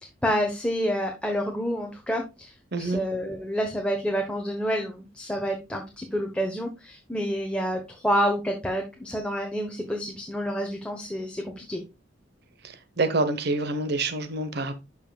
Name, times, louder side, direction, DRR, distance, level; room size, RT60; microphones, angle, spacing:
voice 1, 0.2-11.8, equal, 5° left, 1.1 m, -28 dB
voice 2, 2.7-3.0 12.6-14.7, right 2 dB, 55° right, 1.1 m, -27 dB
12.0 x 5.6 x 2.4 m
head